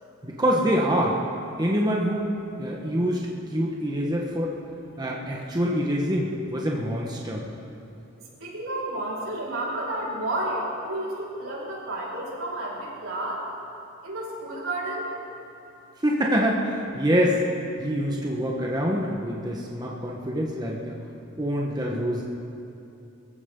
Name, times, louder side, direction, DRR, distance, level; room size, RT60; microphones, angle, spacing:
voice 1, 0.2-1.2 1.6-4.5 5.0-7.5 16.0-17.4 17.8-20.9 21.4-22.2, equal, 20° right, -2 dB, 1.3 m, -25 dB
voice 2, 8.4-13.4 14.0-15.1, right 1 dB, 80° right, -6 dB, 4.6 m, -31 dB
23.0 x 15.0 x 3.8 m, 2.8 s
head